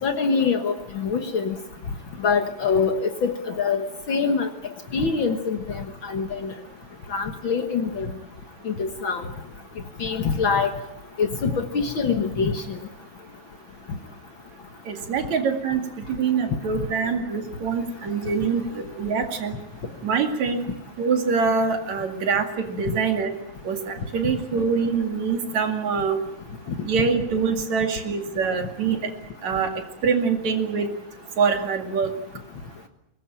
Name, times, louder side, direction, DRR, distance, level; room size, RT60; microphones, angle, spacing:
voice 1, 0.0-1.6 2.2-4.5 4.9-6.5 7.1-8.1 8.7-9.3 10.0-10.7 11.2-12.8 16.8-16.9 22.9-23.0, left 5 dB, 50° left, 7 dB, 1.9 m, -24 dB
voice 2, 14.9-15.8 16.2-19.6 20.0-20.7 21.0-23.3 23.6-26.2 26.8-29.1 29.4-29.7 30.0-30.9 31.4-32.1, right 5 dB, 70° right, 5 dB, 3.6 m, -24 dB
23.5 x 19.5 x 9.0 m, 0.88 s
omnidirectional pair, 3.3 m